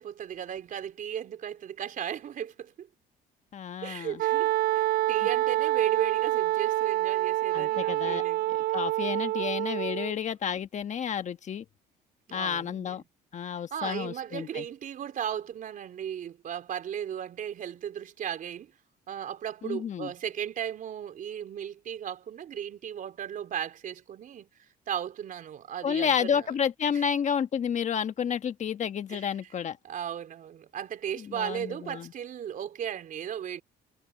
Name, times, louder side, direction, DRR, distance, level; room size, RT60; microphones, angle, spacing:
voice 1, 0.0-2.9 3.8-8.6 12.3-13.0 13.7-18.7 19.1-26.5 26.9-27.0 29.1-29.3 29.8-33.6, right 9 dB, 55° right, 3.8 m, -36 dB
voice 2, 3.5-4.2 7.5-8.2 8.5-11.6 12.3-13.0 13.3-14.6 19.6-20.1 25.8-29.8 31.2-32.1, left 7 dB, 45° left, 1.4 m, -30 dB
Wind instrument woodwind instrument, 4.2-10.2, right 17 dB, 90° right, 2.8 m, -27 dB
cardioid pair, 110°, 17 cm